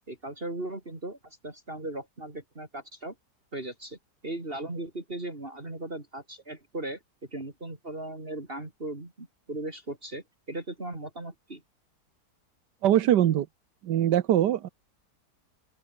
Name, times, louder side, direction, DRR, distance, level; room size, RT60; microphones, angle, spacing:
voice 1, 0.1-3.2 3.5-7.0 7.3-11.6, right 2 dB, 35° right, 3.7 m, -38 dB
voice 2, 12.8-13.5 13.8-14.7, right 11 dB, 85° right, 1.5 m, -22 dB
open air
omnidirectional pair, 1.8 m